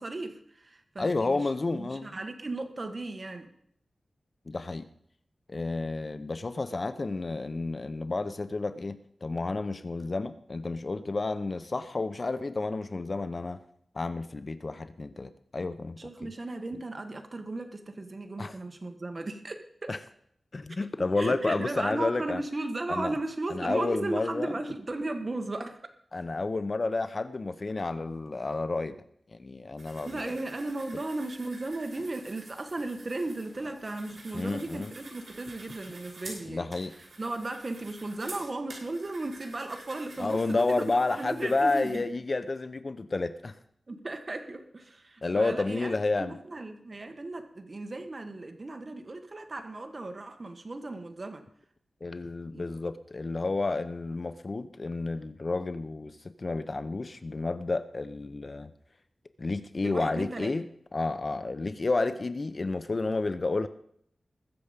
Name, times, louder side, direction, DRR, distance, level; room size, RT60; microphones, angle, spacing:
voice 1, 0.0-3.5 16.0-19.9 21.2-25.8 30.0-36.7 37.2-42.1 43.9-51.4 52.5-52.6 59.8-60.5, right 2 dB, 40° right, 6 dB, 1.5 m, -36 dB
voice 2, 1.0-2.1 4.5-4.9 5.5-13.6 13.9-16.3 18.4-18.6 19.9-20.0 20.5-22.4 22.9-23.1 23.5-24.5 26.1-29.0 29.3-30.3 34.3-34.9 36.5-36.9 40.2-43.6 45.2-46.3 52.0-58.7 59.4-60.6 60.9-63.7, left 3 dB, 45° left, 12 dB, 0.7 m, -31 dB
sound 1, 29.8-42.0, right 2 dB, 60° right, 5.8 m, -49 dB
21.0 x 7.1 x 5.2 m, 0.67 s
wide cardioid pair, 85°, 0 cm